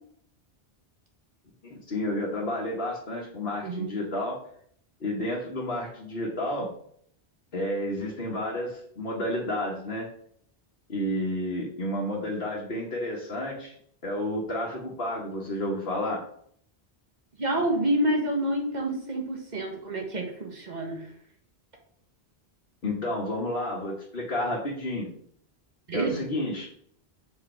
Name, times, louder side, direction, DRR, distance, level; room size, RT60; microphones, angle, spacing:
voice 1, 1.6-4.4 5.0-6.7 7.5-10.1 10.9-13.7 14.0-16.2 22.8-25.1 25.9-26.7, left 1 dB, 65° left, -4 dB, 1.5 m, -31 dB
voice 2, 17.4-21.1 25.9-26.2, right 1 dB, 45° right, 2 dB, 1.5 m, -28 dB
6.2 x 4.9 x 4.3 m, 0.65 s
omnidirectional pair, 1.1 m